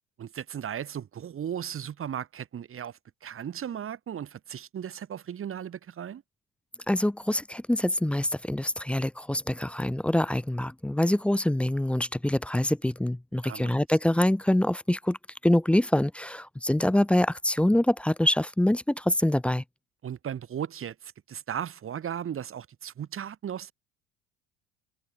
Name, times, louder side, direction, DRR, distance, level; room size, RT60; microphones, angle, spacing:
voice 1, 0.2-6.2 13.4-13.7 20.0-23.7, right 9 dB, 40° right, 3.4 m, -36 dB
voice 2, 6.9-15.2 15.4-19.6, left 1 dB, 5° left, 0.5 m, -25 dB
hypercardioid pair, 65°, 33 cm